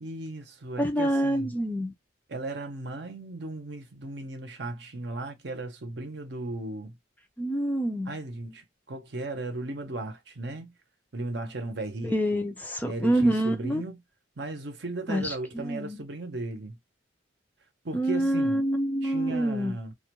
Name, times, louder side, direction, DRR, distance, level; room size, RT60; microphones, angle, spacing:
voice 1, 0.0-1.5 2.3-6.9 8.1-10.7 11.1-12.4 12.8-14.0 14.4-16.8 17.8-18.6 19.0-19.9, right 2 dB, 60° right, 0.6 m, -36 dB
voice 2, 0.8-1.9 7.4-8.1 12.0-13.8 15.1-16.0 17.9-19.8, right 1 dB, 10° left, 0.4 m, -27 dB
2.3 x 2.2 x 2.9 m
head